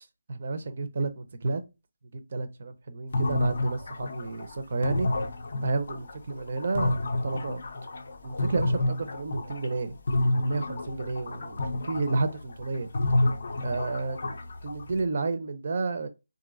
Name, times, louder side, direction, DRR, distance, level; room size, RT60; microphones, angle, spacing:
voice 1, 0.3-1.6 2.1-5.1 5.6-7.0 7.2-7.6 8.2-10.0 10.3-12.9 13.6-14.2 14.6-16.1, right 3 dB, 35° right, 0.5 m, -31 dB
sound 1, 3.1-9.8 10.1-15.0, left 2 dB, 40° left, 0.5 m, -29 dB
4.0 x 2.5 x 2.4 m
hypercardioid pair, 180°, 0 cm